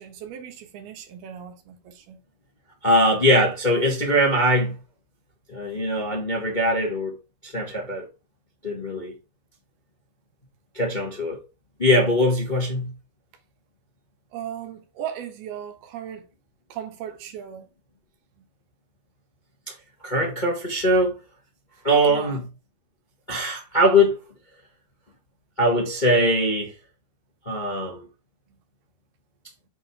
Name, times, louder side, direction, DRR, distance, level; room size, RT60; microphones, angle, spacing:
voice 1, 0.0-2.2 14.3-16.3 16.7-17.7 18.4-18.5 22.1-22.4, right 9 dB, 85° right, 3.3 m, -37 dB
voice 2, 2.8-4.7 5.5-7.1 7.4-8.1 8.6-9.1 10.7-11.4 11.8-12.9 20.0-21.2 21.8-22.4 23.3-24.2 25.6-26.7 27.4-28.1, equal, 20° left, 1.2 m, -21 dB
7.8 x 5.2 x 3.7 m
omnidirectional pair, 4.4 m